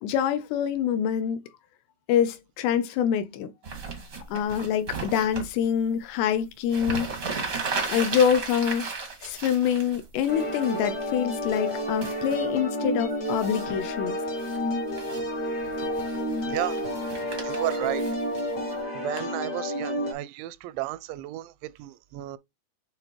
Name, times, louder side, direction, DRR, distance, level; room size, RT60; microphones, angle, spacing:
voice 1, 0.0-1.4 2.1-3.5 4.3-7.1 7.9-8.9 9.2-14.2 19.2-19.3, left 8 dB, 80° left, 2.6 m, -25 dB
sound 1, 3.6-5.5 6.4-6.5 6.7-11.0 11.4-12.4 13.2-13.8 14.2-14.6 14.9-15.2 15.6-18.8, right 4 dB, 65° right, 0.8 m, -35 dB
sound 2, 10.3-20.1, equal, 55° left, 1.1 m, -30 dB
voice 2, 16.5-16.8 17.4-18.0 18.9-22.4, right 15 dB, 85° right, 2.9 m, -33 dB
8.7 x 3.7 x 3.0 m
omnidirectional pair, 5.1 m